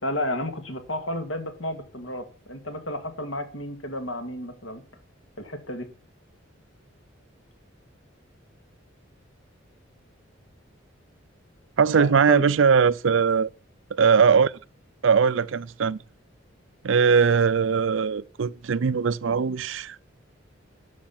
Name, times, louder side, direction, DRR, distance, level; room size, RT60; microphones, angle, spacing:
voice 1, 0.0-4.8 5.4-5.9 11.9-12.4, left 1 dB, 85° left, 2.3 m, -32 dB
voice 2, 11.8-13.5 13.9-14.5 15.0-16.0 16.8-20.0, right 6 dB, 75° right, 0.5 m, -20 dB
12.0 x 6.2 x 7.3 m
head